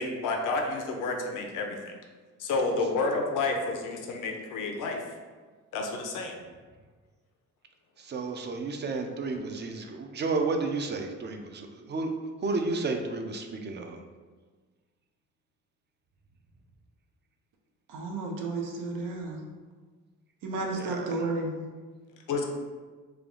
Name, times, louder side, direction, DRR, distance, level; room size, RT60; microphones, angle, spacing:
voice 1, 0.0-1.9 2.4-5.0 5.7-6.3 22.3-22.5, left 3 dB, 75° left, 2 dB, 0.6 m, -30 dB
voice 2, 8.0-12.1 12.4-14.0 20.7-21.3, right 3 dB, 35° right, 4 dB, 0.5 m, -32 dB
voice 3, 17.9-19.4 20.4-21.5, right 3 dB, 80° right, 0 dB, 0.7 m, -32 dB
3.3 x 2.3 x 3.7 m, 1.4 s
cardioid pair, 85°, 32 cm